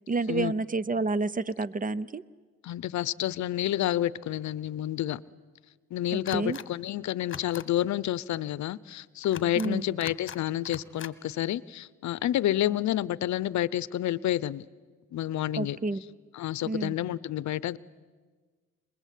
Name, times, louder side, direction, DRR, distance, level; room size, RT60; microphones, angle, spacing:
voice 1, 0.1-2.2 6.1-6.6 9.6-9.8 15.6-16.0 16.6-17.0, right 3 dB, 25° right, 19 dB, 0.7 m, -29 dB
voice 2, 2.6-5.2 5.9-14.6 15.1-15.8 16.4-17.8, left 13 dB, 70° left, 20 dB, 0.7 m, -29 dB
sound 1, 6.3-6.7 7.2-7.7 9.2-9.7 10.0-10.4 10.7-11.1, left 8 dB, 40° left, 1.3 m, -41 dB
27.5 x 20.5 x 8.4 m, 1.4 s
cardioid pair, 90°, 30 cm